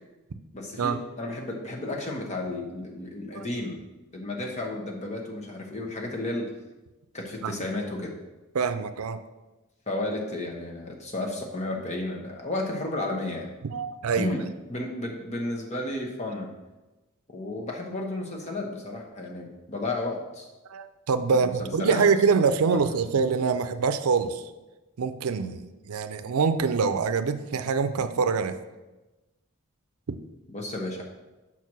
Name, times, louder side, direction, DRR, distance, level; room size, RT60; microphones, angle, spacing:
voice 1, 0.5-3.8 4.1-6.5 7.1-8.2 9.9-13.5 14.2-16.5 17.3-20.5 21.3-22.0 30.5-31.0, left 2 dB, 30° left, 0 dB, 1.1 m, -32 dB
voice 2, 8.5-9.2 13.7-14.3 20.7-24.4 25.0-28.6 30.1-30.2, right 5 dB, 85° right, 10 dB, 0.5 m, -25 dB
5.8 x 4.6 x 6.0 m, 1.1 s
head